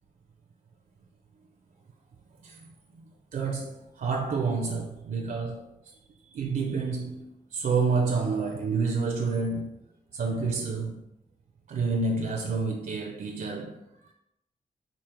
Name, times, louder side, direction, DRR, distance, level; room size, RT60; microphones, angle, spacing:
voice 1, 2.4-3.1 3.3-5.9 6.3-9.7 10.1-11.0 11.7-14.1, right 4 dB, 65° right, 0.4 m, -29 dB
4.9 x 2.0 x 4.3 m
wide cardioid pair, 120°, 15 cm